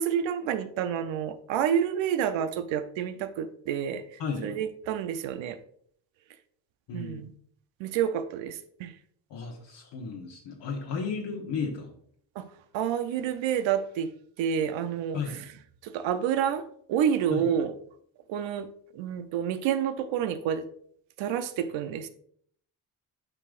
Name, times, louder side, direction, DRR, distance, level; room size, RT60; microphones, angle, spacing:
voice 1, 0.0-5.6 6.9-7.3 7.8-8.9 11.0-11.1 12.4-12.5 12.7-14.1 14.4-15.4 15.8-17.7 18.3-18.7 18.9-20.7 21.2-22.1, right 8 dB, 90° right, 11 dB, 0.7 m, -29 dB
voice 2, 4.2-4.5 6.9-7.2 9.3-11.9 15.1-15.4 17.3-17.5, left 5 dB, 70° left, -1 dB, 1.3 m, -34 dB
8.5 x 4.8 x 2.5 m, 0.63 s
cardioid pair, 80°, 44 cm